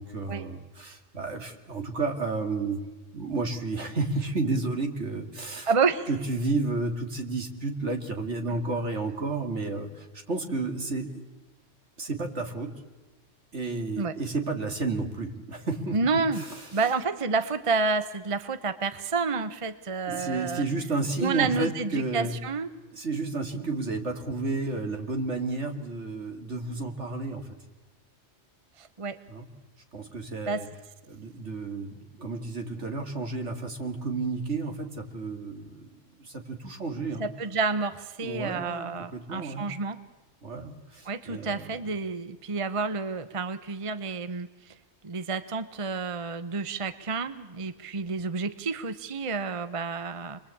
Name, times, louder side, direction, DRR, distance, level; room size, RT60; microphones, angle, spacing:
voice 1, 0.0-2.8 3.1-5.7 6.1-11.1 12.0-12.7 13.5-16.6 20.1-22.3 22.9-27.5 29.3-29.4 29.9-30.7 31.1-35.9 36.2-37.3 38.2-38.9 39.1-39.7 40.4-41.7, right 3 dB, 60° right, 4 dB, 2.9 m, -31 dB
voice 2, 5.7-6.1 14.0-14.1 15.9-16.4 16.7-20.6 21.2-22.7 28.8-29.2 30.5-30.6 37.2-40.0 41.0-44.7 45.0-50.4, right 4 dB, 30° right, 11 dB, 0.9 m, -29 dB
28.0 x 22.0 x 8.6 m, 1.1 s
omnidirectional pair, 1.3 m